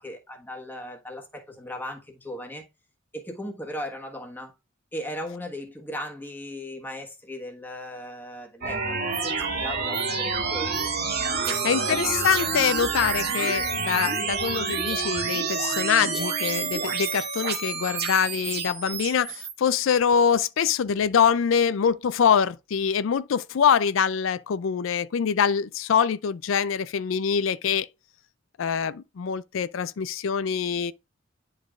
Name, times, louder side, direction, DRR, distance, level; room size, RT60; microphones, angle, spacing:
voice 1, 0.0-2.6 3.1-4.5 4.9-10.8 11.5-12.1, left 1 dB, 10° left, 1.4 m, -37 dB
sound 1, 8.6-19.5, right 5 dB, 55° right, 2.1 m, -28 dB
voice 2, 11.6-27.9 28.6-30.9, left 7 dB, 90° left, 0.4 m, -24 dB
10.5 x 5.0 x 2.4 m
head